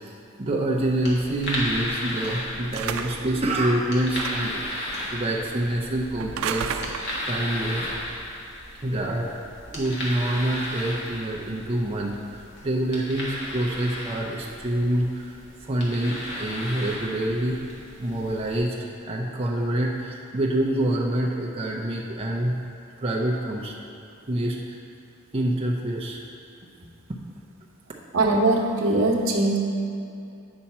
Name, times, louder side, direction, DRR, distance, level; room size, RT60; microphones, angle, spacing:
voice 1, 0.4-6.9 7.3-8.1 8.8-9.4 9.7-15.3 15.6-17.6 18.0-22.6 23.0-23.7 24.3-24.8 25.3-26.2, right 1 dB, 30° right, -3 dB, 0.6 m, -26 dB
sound 1, 0.8-18.6, left 1 dB, 60° left, 1.7 m, -35 dB
sound 2, 2.7-3.3 4.1-4.6 6.2-7.3, right 6 dB, 90° right, 0.4 m, -32 dB
voice 2, 28.1-29.6, right 2 dB, 75° right, -1 dB, 1.0 m, -21 dB
8.6 x 5.7 x 4.2 m, 2.6 s
head